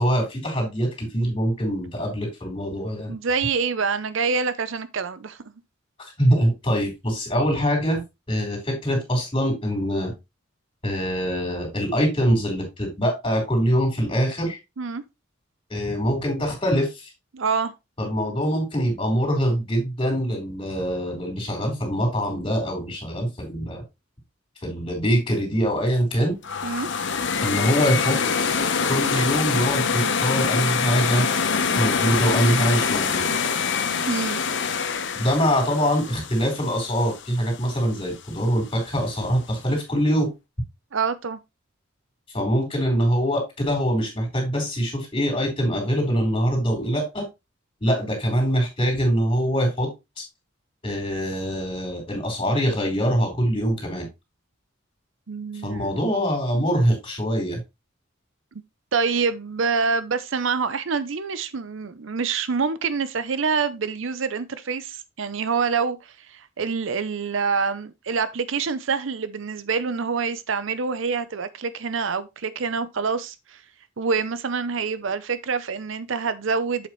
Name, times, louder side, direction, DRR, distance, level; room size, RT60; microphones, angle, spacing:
voice 1, 0.0-3.1 6.2-8.0 8.3-10.1 10.8-14.6 15.7-17.1 18.0-23.8 24.6-26.3 27.4-28.5 28.9-31.3 31.8-33.3 35.1-40.3 42.3-47.3 47.8-49.9 50.2-50.3 50.8-54.1 55.6-57.6, equal, 25° left, 4.4 m, -24 dB
voice 2, 3.1-5.4 14.8-15.0 17.3-17.7 26.6-26.9 34.1-34.4 40.9-41.4 55.3-55.9 58.9-73.6 74.0-76.9, right 5 dB, 65° right, 0.6 m, -26 dB
sound 1, 26.4-37.4, left 5 dB, 60° left, 1.1 m, -25 dB
7.9 x 7.3 x 3.1 m
head